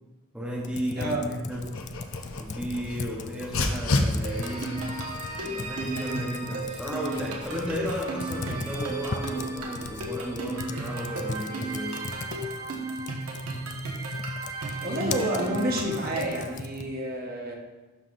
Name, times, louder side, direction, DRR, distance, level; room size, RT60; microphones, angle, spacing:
voice 1, 0.3-1.9 2.4-4.9 5.3-12.0, equal, 5° right, -4 dB, 0.9 m, -34 dB
Computer keyboard, 0.6-17.0, left 4 dB, 35° left, 0.3 m, -39 dB
Dog, 1.5-10.6, left 2 dB, 70° left, 0.8 m, -34 dB
sound 1, 4.2-16.5, right 2 dB, 80° right, 1.4 m, -34 dB
voice 2, 14.8-17.5, right 1 dB, 45° right, -1 dB, 1.1 m, -29 dB
11.5 x 5.6 x 2.6 m, 1.2 s
head